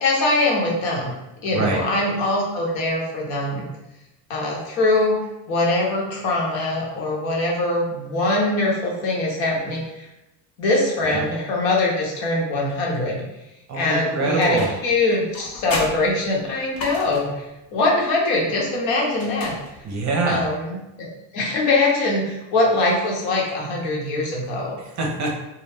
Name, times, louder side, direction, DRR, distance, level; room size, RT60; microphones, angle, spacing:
voice 1, 0.0-1.1 1.4-3.6 4.3-5.2 5.5-10.1 10.6-13.2 13.7-17.4 17.7-19.5 20.3-21.1 21.3-24.8, left 2 dB, 70° left, -2 dB, 1.0 m, -22 dB
voice 2, 1.5-1.8 11.0-11.2 13.7-14.7 19.8-20.4 24.8-25.3, right 3 dB, 35° right, 0 dB, 0.6 m, -24 dB
sound 1, 14.4-15.0 15.3-17.4 19.1-20.1, left 2 dB, 45° left, 0.7 m, -33 dB
2.3 x 2.0 x 3.3 m, 0.95 s
supercardioid pair, 105°, 48 cm